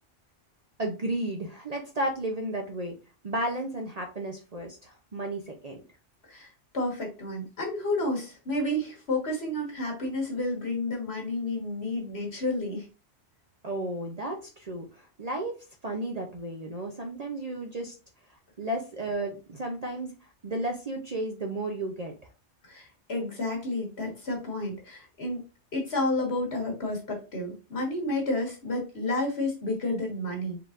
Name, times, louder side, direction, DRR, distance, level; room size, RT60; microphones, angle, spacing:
voice 1, 0.8-3.0 3.2-5.8 13.6-17.9 18.6-20.1 20.4-22.1, right 1 dB, 40° right, 2 dB, 0.6 m, -33 dB
voice 2, 6.7-12.9 22.6-25.4 25.7-30.6, left 2 dB, 60° left, 0 dB, 1.8 m, -30 dB
4.6 x 3.7 x 2.5 m, 0.32 s
omnidirectional pair, 1.2 m